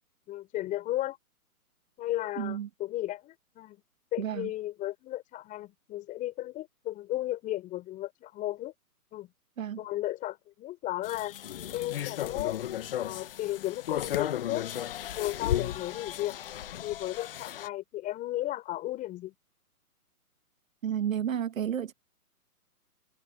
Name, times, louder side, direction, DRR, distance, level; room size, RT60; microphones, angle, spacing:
voice 1, 0.3-1.2 2.0-3.8 4.1-8.7 9.1-9.3 9.8-11.3 11.7-12.6 13.0-14.7 15.2-16.4 16.8-19.3, left 15 dB, 15° left, 5.4 m, -34 dB
voice 2, 2.4-2.7 4.2-4.5 9.6-9.8 20.8-21.9, right 9 dB, 60° right, 1.5 m, -31 dB
sound 1, 11.0-17.7, left 11 dB, 35° left, 1.3 m, -35 dB
hypercardioid pair, 155°, 45 cm